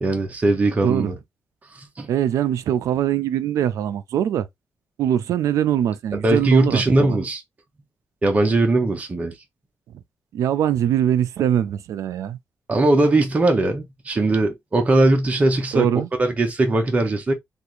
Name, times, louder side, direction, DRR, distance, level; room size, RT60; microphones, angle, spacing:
voice 1, 0.0-1.1 1.8-2.1 6.2-7.4 8.2-9.3 12.7-15.9 16.2-17.3, right 2 dB, 25° right, 0.8 m, -20 dB
voice 2, 2.1-4.5 5.0-7.2 10.3-12.4 15.7-16.1, right 10 dB, 85° right, 0.4 m, -22 dB
3.5 x 2.5 x 3.0 m
cardioid pair, 130°, 5 cm